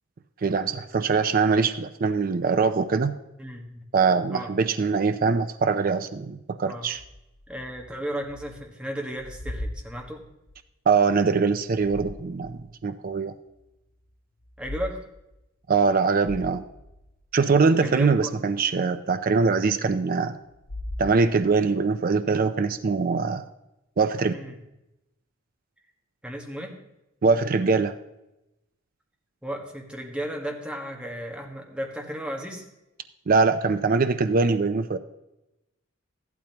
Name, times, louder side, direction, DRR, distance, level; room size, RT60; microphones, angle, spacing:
voice 1, 0.4-3.1 3.9-7.0 10.9-13.3 15.7-16.6 17.3-20.4 21.0-23.4 24.0-24.3 27.2-27.9 33.3-35.0, right 4 dB, 45° right, 10 dB, 0.4 m, -22 dB
voice 2, 3.4-3.9 4.3-4.5 6.7-6.9 7.5-10.2 14.6-15.0 17.8-18.3 24.3-24.6 26.2-26.8 29.4-32.7, equal, 5° right, 1 dB, 1.5 m, -34 dB
sound 1, 6.9-8.6 8.9-10.6 11.5-12.6 13.1-13.2 14.4-14.9 15.3-15.4 15.9-17.5 20.5-21.6, left 1 dB, 60° left, 1.0 m, -39 dB
14.5 x 12.0 x 2.9 m, 0.92 s
head